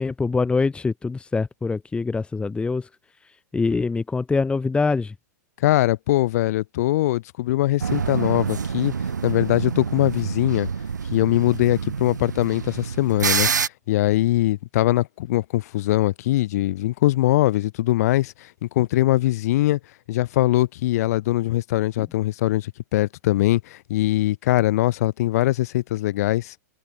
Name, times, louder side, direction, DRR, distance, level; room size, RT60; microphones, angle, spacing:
voice 1, 0.0-2.9 3.5-5.1, left 4 dB, 10° left, 1.4 m, -24 dB
voice 2, 5.6-8.9 9.2-10.7 11.1-13.5 13.9-19.8 20.1-26.5, left 15 dB, 60° left, 3.7 m, -22 dB
sound 1, 7.8-13.7, right 6 dB, 90° right, 2.9 m, -27 dB
open air
hypercardioid pair, 110°, 9 cm